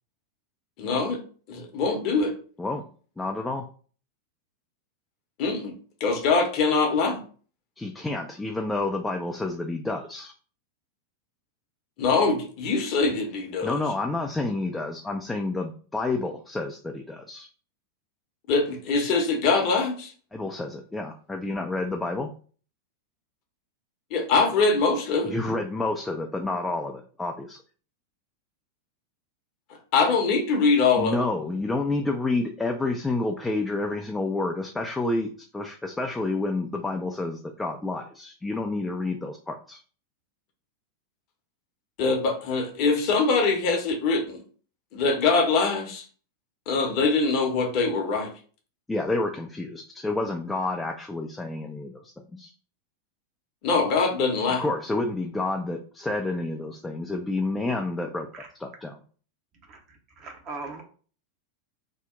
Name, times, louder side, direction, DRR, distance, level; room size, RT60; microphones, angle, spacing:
voice 1, 0.8-1.2 1.5-2.3 5.4-5.7 6.0-7.2 12.0-13.8 18.5-20.1 24.1-25.3 29.9-31.2 42.0-44.4 44.9-46.0 46.7-48.3 53.6-54.6, left 4 dB, 45° left, 3 dB, 0.7 m, -23 dB
voice 2, 3.2-3.6 7.8-10.3 13.6-17.5 20.3-22.3 25.3-27.6 31.0-39.8 48.9-52.5 54.6-58.3 58.6-59.0, left 2 dB, 10° left, 3 dB, 0.3 m, -29 dB
voice 3, 59.7-60.8, right 3 dB, 35° right, 3 dB, 0.7 m, -40 dB
2.8 x 2.0 x 3.7 m, 0.41 s
figure-of-eight pair, 90°, 0 cm